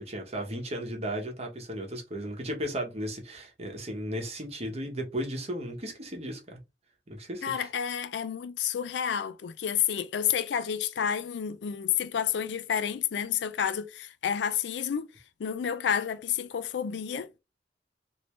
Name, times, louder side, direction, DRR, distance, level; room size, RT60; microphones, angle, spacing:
voice 1, 0.1-6.6 7.1-7.7, equal, 35° right, 1.0 m, -35 dB
voice 2, 7.4-15.1 15.4-17.4, left 8 dB, 70° left, 0.4 m, -30 dB
3.3 x 2.7 x 3.1 m
head